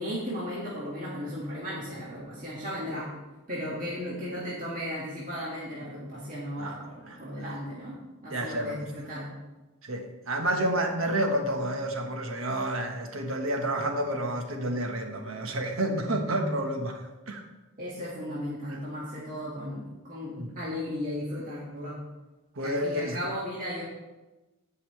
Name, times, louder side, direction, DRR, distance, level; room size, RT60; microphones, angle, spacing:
voice 1, 0.0-3.1 3.5-8.0 8.2-9.3 17.8-22.0 22.6-23.8, equal, 40° right, -7 dB, 1.9 m, -35 dB
voice 2, 6.6-7.6 8.3-8.9 9.8-17.4 18.7-18.8 20.4-20.5 22.5-23.2, right 1 dB, 75° right, 4 dB, 1.3 m, -30 dB
16.0 x 5.5 x 3.3 m, 1.1 s
head